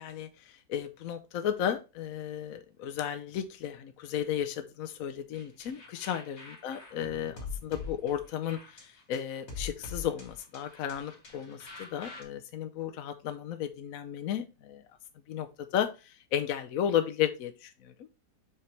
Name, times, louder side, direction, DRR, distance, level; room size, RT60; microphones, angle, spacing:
voice 1, 0.0-14.8 15.3-18.2, left 9 dB, 65° left, 7 dB, 1.0 m, -34 dB
sound 1, 5.3-12.2, left 4 dB, 40° left, 2.2 m, -44 dB
7.1 x 5.1 x 3.2 m, 0.29 s
omnidirectional pair, 1.8 m